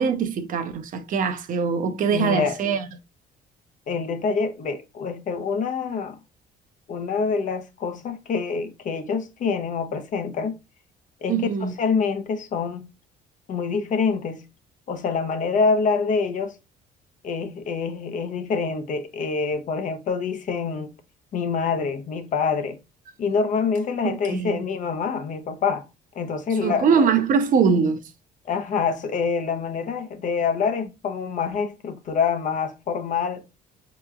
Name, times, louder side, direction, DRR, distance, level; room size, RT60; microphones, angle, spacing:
voice 1, 0.0-2.8 11.3-11.7 24.0-24.6 26.6-28.0, right 6 dB, 55° right, 0.7 m, -22 dB
voice 2, 1.8-2.6 3.9-6.2 6.9-10.6 11.2-12.9 13.5-14.4 14.9-16.6 17.2-20.9 21.3-22.8 23.2-25.9 26.1-27.1 28.5-33.4, left 5 dB, 50° left, 0.7 m, -26 dB
4.9 x 2.9 x 2.3 m
cardioid pair, 110°, 17 cm